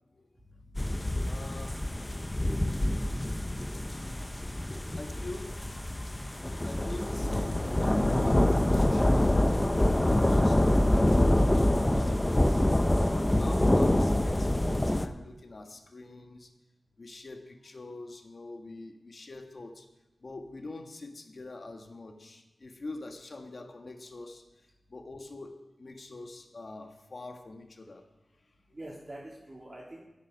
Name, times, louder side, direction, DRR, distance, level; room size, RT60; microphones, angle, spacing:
voice 1, 0.4-1.4 28.7-30.0, right 1 dB, 35° right, -6 dB, 3.3 m, -47 dB
sound 1, 0.7-15.1, left 1 dB, 20° left, 0.7 m, -26 dB
voice 2, 1.1-2.5 4.6-5.6 6.6-9.6 9.9-12.6 13.1-16.5 17.0-19.9 20.2-24.4 24.9-28.0, left 2 dB, 55° left, 5 dB, 1.6 m, -44 dB
13.5 x 10.5 x 5.4 m, 1.0 s
wide cardioid pair, 75°, 0 cm